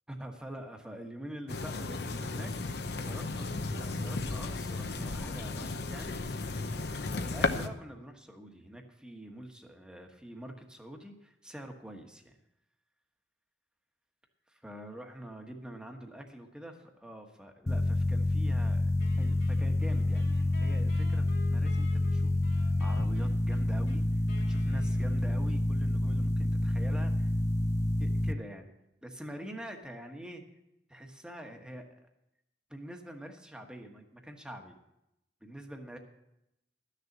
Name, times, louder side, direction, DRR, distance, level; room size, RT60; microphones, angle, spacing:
voice 1, 0.1-6.2 7.0-12.3 14.5-16.7 17.0-18.9 19.2-24.2 24.5-27.3 28.0-28.7 29.0-30.4 30.9-31.9 32.7-34.8 35.4-36.0, right 1 dB, 5° right, 3 dB, 1.3 m, -45 dB
sound 1, 1.5-7.7, left 3 dB, 65° left, 0.8 m, -34 dB
sound 2, 17.7-28.3, left 1 dB, 15° left, 0.3 m, -28 dB
Wind instrument woodwind instrument, 19.0-25.6, left 3 dB, 90° left, 3.0 m, -52 dB
13.0 x 6.7 x 7.2 m, 0.86 s
head